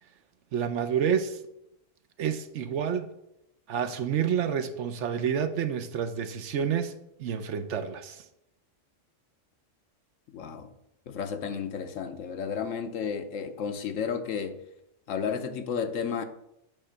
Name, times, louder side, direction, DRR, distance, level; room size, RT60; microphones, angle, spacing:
voice 1, 0.5-1.4 2.2-3.1 3.7-6.9 7.2-8.2, right 8 dB, 70° right, 1.0 m, -29 dB
voice 2, 10.3-10.7 11.1-14.6 15.1-16.2, left 6 dB, 80° left, 1.1 m, -32 dB
8.7 x 3.3 x 6.4 m
omnidirectional pair, 1.3 m